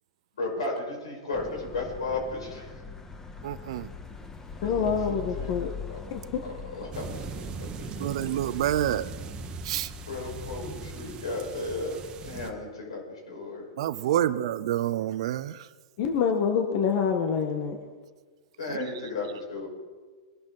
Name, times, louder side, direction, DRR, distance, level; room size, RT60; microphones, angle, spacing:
voice 1, 0.4-2.7 4.6-6.0 6.4-8.3 10.1-13.6 14.1-14.3 18.6-19.7, left 3 dB, 85° left, 0 dB, 5.8 m, -35 dB
sound 1, 1.3-11.2, left 5 dB, 15° left, 1.6 m, -42 dB
voice 2, 3.4-3.9 8.0-9.1 9.6-9.9 13.8-15.7 18.7-18.8, right 12 dB, 65° right, 16 dB, 0.7 m, -28 dB
voice 3, 4.6-5.7 6.1-6.2 16.0-17.8, left 6 dB, 55° left, 4 dB, 1.6 m, -26 dB
sound 2, 6.9-12.5, right 5 dB, 30° right, 1.5 m, -40 dB
22.0 x 12.0 x 4.2 m, 1.4 s
hypercardioid pair, 115°, 3 cm